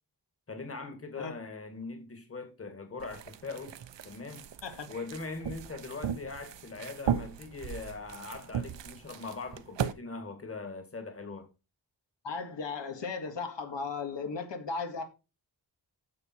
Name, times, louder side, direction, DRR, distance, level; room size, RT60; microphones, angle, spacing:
voice 1, 0.5-3.8 4.0-4.4 4.9-11.5, left 3 dB, 30° left, 2.2 m, -41 dB
sound 1, 3.0-9.9, right 8 dB, 85° right, 0.9 m, -37 dB
voice 2, 12.2-15.0, left 4 dB, 90° left, 2.0 m, -36 dB
9.6 x 7.2 x 4.6 m
wide cardioid pair, 150°, 42 cm